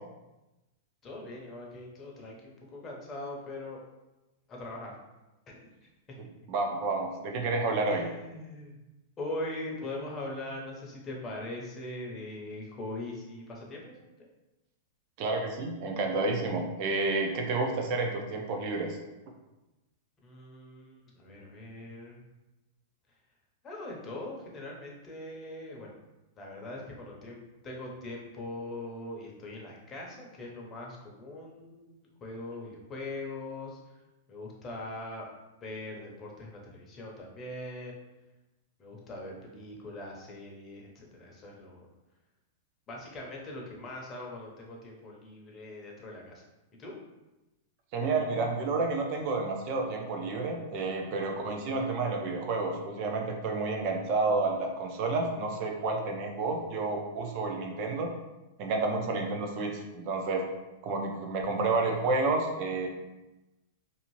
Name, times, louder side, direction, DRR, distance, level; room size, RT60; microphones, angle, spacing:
voice 1, 1.0-3.8 4.5-5.0 5.5-5.6 7.9-8.8 9.2-13.9 20.2-22.3 23.6-25.9 26.4-34.0 34.3-35.3 35.6-38.0 38.8-41.9 42.9-46.4 46.8-47.0, left 2 dB, 20° left, -2 dB, 0.7 m, -41 dB
voice 2, 6.5-8.1 15.2-19.0 47.9-58.1 58.6-60.4 60.8-62.9, right 3 dB, 45° right, 2 dB, 0.5 m, -30 dB
2.7 x 2.4 x 3.0 m, 1.0 s
supercardioid pair, 145°, 0 cm